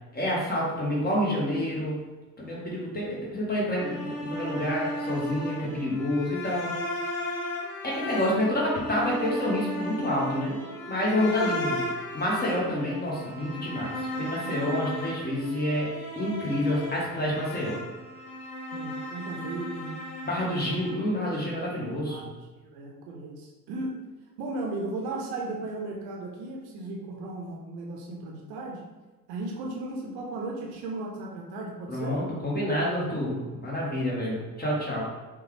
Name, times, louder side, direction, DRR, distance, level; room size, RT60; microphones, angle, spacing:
voice 1, 0.1-2.0 2.4-6.7 7.8-10.6 10.9-11.8 12.1-17.8 20.2-22.3 31.9-35.0, left 1 dB, 20° left, -4 dB, 1.4 m, -28 dB
sound 1, 3.8-20.9, left 1 dB, 65° left, 0.8 m, -35 dB
voice 2, 18.7-20.0 21.7-24.0 24.4-28.8 29.3-32.2 34.6-35.0, right 2 dB, 55° right, -1 dB, 0.8 m, -36 dB
5.2 x 2.3 x 3.3 m, 1.2 s
figure-of-eight pair, 50°, 46 cm